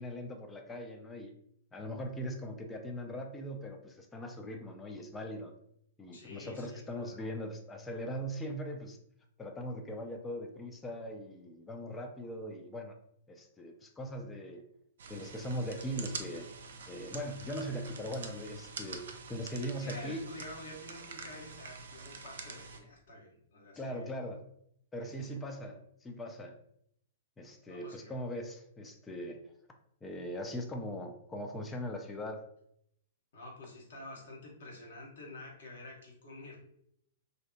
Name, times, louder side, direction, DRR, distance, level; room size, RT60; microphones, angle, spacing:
voice 1, 0.0-1.3 1.7-5.5 6.0-9.0 9.4-13.0 13.3-14.6 15.1-16.5 16.9-20.3 23.8-24.5 24.9-26.6 27.4-29.5 30.0-32.4, equal, 15° left, 4 dB, 0.3 m, -40 dB
voice 2, 6.1-7.2 19.8-24.1 25.0-25.4 27.7-28.1 33.3-36.6, left 1 dB, 60° left, -2 dB, 0.9 m, -49 dB
sound 1, 15.0-22.8, right 4 dB, 60° right, 0.4 m, -46 dB
2.7 x 2.0 x 2.4 m, 0.71 s
figure-of-eight pair, 105°, 0 cm